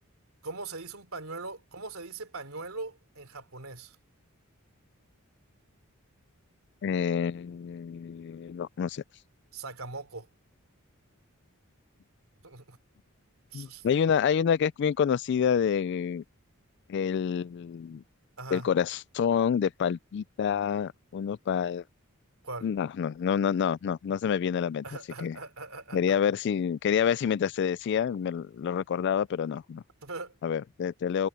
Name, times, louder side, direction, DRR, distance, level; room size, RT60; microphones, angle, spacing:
voice 1, 0.4-3.9 9.5-10.3 12.4-12.8 13.5-13.8 18.4-18.7 22.4-22.7 24.8-26.0 30.0-30.3, right 3 dB, 75° right, 3.3 m, -40 dB
voice 2, 6.8-9.0 13.5-16.2 16.9-18.0 18.5-21.8 22.6-24.8 25.2-25.4 25.9-29.8 30.4-31.3, left 7 dB, 55° left, 0.3 m, -28 dB
head